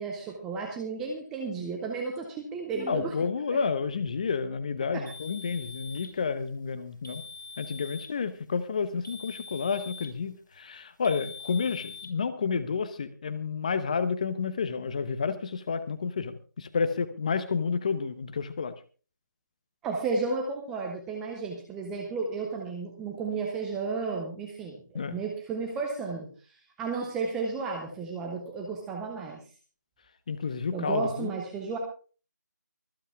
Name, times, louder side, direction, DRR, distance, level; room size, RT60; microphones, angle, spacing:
voice 1, 0.0-3.1 3.5-3.6 4.9-5.0 19.8-26.3 26.8-29.4 30.7-31.8, right 4 dB, 5° right, 1 dB, 0.6 m, -33 dB
voice 2, 2.9-7.2 7.6-18.7 24.9-25.2 30.3-31.3, left 5 dB, 25° left, 12 dB, 0.9 m, -30 dB
sound 1, 5.1-6.2 7.0-8.2 9.0-10.2 11.0-12.1, left 5 dB, 85° left, 4.1 m, -44 dB
24.0 x 8.4 x 3.5 m, 0.38 s
figure-of-eight pair, 165°, 10 cm